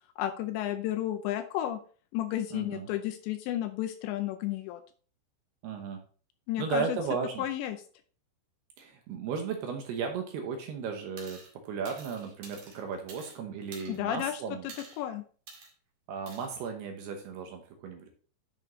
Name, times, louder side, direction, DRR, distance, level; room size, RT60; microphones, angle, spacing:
voice 1, 0.2-1.8 2.1-4.8 6.5-7.0 7.4-7.8 13.9-14.4 15.0-15.2, left 12 dB, 80° left, 9 dB, 2.7 m, -32 dB
voice 2, 2.5-2.9 5.6-6.0 6.6-7.5 8.8-14.7 16.1-18.1, right 6 dB, 70° right, 4 dB, 2.7 m, -35 dB
sound 1, 11.2-11.5 11.8-13.4 13.7-14.2 14.7-15.0 15.5-15.7 16.3-16.5, right 4 dB, 50° right, 3.1 m, -48 dB
10.5 x 6.7 x 3.1 m, 0.41 s
omnidirectional pair, 5.5 m